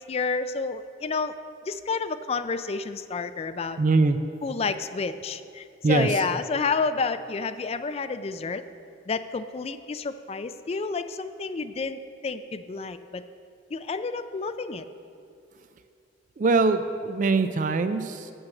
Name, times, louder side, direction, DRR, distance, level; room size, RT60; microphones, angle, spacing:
voice 1, 0.0-1.3 1.7-3.8 4.4-8.7 9.1-13.2 13.7-14.8, left 4 dB, 35° left, 10 dB, 0.4 m, -30 dB
voice 2, 3.8-4.2 5.8-6.2 16.4-18.3, right 3 dB, 45° right, 10 dB, 0.4 m, -22 dB
9.0 x 6.3 x 7.6 m, 2.5 s
head